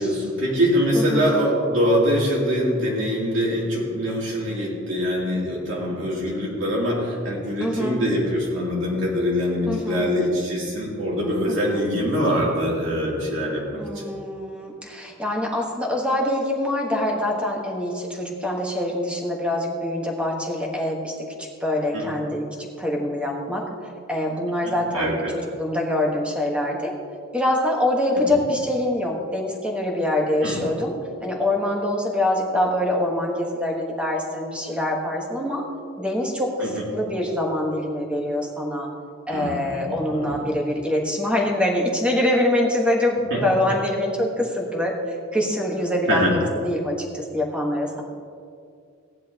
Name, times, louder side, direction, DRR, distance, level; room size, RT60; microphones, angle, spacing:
voice 1, 0.0-14.1 21.9-22.1 24.9-25.3 28.2-28.3 30.4-30.6 36.6-36.8 39.3-40.4 43.3-43.4 46.1-46.3, equal, 60° right, -4 dB, 2.9 m, -24 dB
voice 2, 0.9-1.3 7.6-8.0 9.7-10.0 11.5-11.8 13.8-21.1 21.4-23.7 24.1-26.9 27.3-30.9 31.2-35.6 36.0-38.9 39.3-48.0, left 1 dB, 5° right, 0 dB, 1.3 m, -24 dB
15.5 x 10.5 x 2.9 m, 2.3 s
head